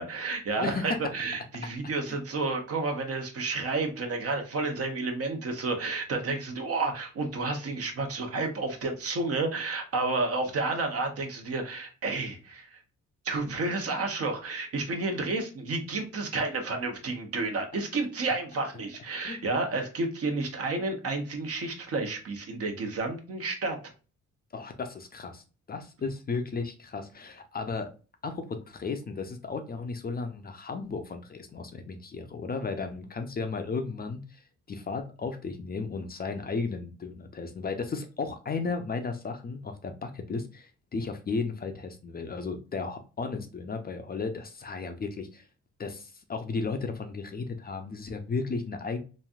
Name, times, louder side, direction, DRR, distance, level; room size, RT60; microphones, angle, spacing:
voice 1, 0.0-12.8 13.2-23.8, right 3 dB, 50° right, 4 dB, 0.9 m, -31 dB
voice 2, 0.6-1.1 2.1-2.2 19.2-19.4 24.5-27.9 28.2-34.4 34.7-45.5 45.8-49.0, left 4 dB, 30° left, 6 dB, 0.5 m, -34 dB
3.1 x 2.6 x 2.3 m, 0.35 s
cardioid pair, 90°, 30 cm